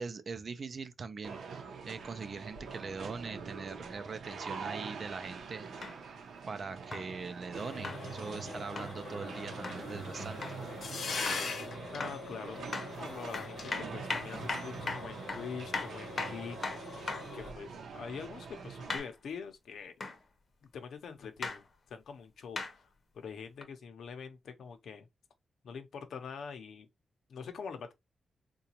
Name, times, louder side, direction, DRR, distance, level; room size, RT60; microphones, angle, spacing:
voice 1, 0.0-1.6 1.9-5.8 6.5-10.4, right 4 dB, 40° right, 0.4 m, -42 dB
sound 1, 1.2-19.0, right 5 dB, 80° right, 0.7 m, -45 dB
sound 2, 5.8-6.0 6.9-7.1 7.8-8.0 8.8-8.9 9.6-9.8 10.4-10.6 11.3-11.5 12.0-12.2 12.7-12.9 13.3-17.3 18.9-19.1 20.0-20.2 21.4-21.6 22.6-22.7 23.6-23.7, left 3 dB, 40° left, 0.7 m, -38 dB
sound 3, 7.5-17.5, left 3 dB, 65° left, 0.9 m, -42 dB
voice 2, 11.9-17.1 17.3-20.0 20.6-22.9 23.1-25.1 25.6-26.9 27.3-27.9, left 6 dB, 90° left, 0.7 m, -44 dB
3.8 x 2.3 x 2.8 m
wide cardioid pair, 170°, 0 cm